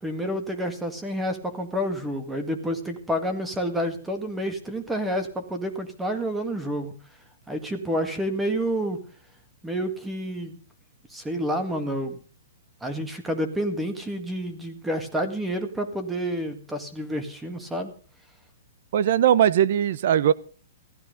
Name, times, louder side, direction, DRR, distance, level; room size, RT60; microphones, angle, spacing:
voice 1, 0.0-7.0 7.5-9.0 9.6-10.6 11.1-12.2 12.8-17.9, equal, 5° right, 6 dB, 2.0 m, -29 dB
voice 2, 18.9-20.3, right 10 dB, 55° right, 18 dB, 1.0 m, -19 dB
15.5 x 13.0 x 5.2 m, 0.39 s
hypercardioid pair, 155°, 0 cm